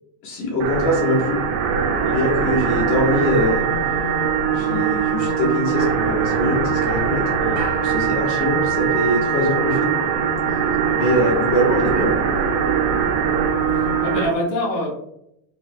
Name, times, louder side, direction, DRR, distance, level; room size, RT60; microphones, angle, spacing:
voice 1, 0.2-1.4 2.0-3.6 4.5-7.3 7.8-10.0 11.0-12.1, left 1 dB, 75° left, -2 dB, 2.0 m, -22 dB
sound 1, 0.6-14.3, right 7 dB, 80° right, 2.1 m, -21 dB
voice 2, 2.0-2.3 7.4-7.7 13.7-14.9, left 1 dB, 55° left, -3 dB, 1.4 m, -26 dB
sound 2, 5.8-8.8 9.1-10.5, right 2 dB, 60° right, 1.4 m, -37 dB
5.3 x 2.2 x 3.5 m, 0.78 s
omnidirectional pair, 3.9 m